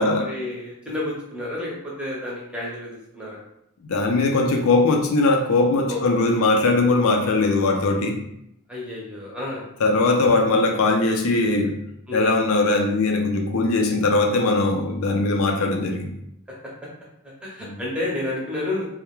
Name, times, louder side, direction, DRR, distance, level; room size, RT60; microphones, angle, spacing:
voice 1, 0.0-3.4 5.9-6.5 8.7-9.7 12.1-12.3 17.2-18.9, left 1 dB, 5° right, -5 dB, 0.6 m, -30 dB
voice 2, 3.9-8.2 9.8-11.8 12.1-16.1 17.6-17.7, left 2 dB, 75° left, 3 dB, 0.4 m, -20 dB
2.3 x 2.0 x 2.9 m, 0.77 s
head